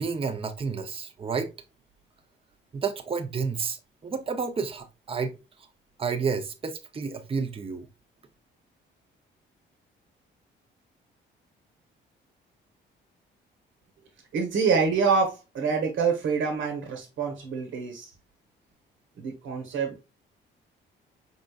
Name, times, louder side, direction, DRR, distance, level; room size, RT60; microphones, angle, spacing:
voice 1, 0.0-1.5 2.7-5.3 6.0-7.9, right 5 dB, 30° right, 0.7 m, -30 dB
voice 2, 14.3-18.1 19.2-20.0, right 5 dB, 75° right, 1.2 m, -26 dB
5.0 x 3.8 x 2.4 m
cardioid pair, 90°, 20 cm